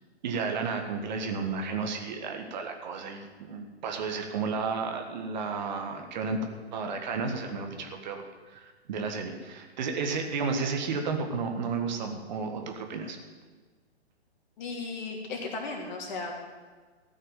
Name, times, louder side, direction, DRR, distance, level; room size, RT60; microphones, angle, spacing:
voice 1, 0.2-6.4 6.7-8.2 8.5-13.2, right 5 dB, 45° right, 4 dB, 1.8 m, -32 dB
voice 2, 14.6-16.3, left 3 dB, 45° left, 0 dB, 3.0 m, -35 dB
14.5 x 6.4 x 9.2 m, 1.4 s
figure-of-eight pair, 125°, 33 cm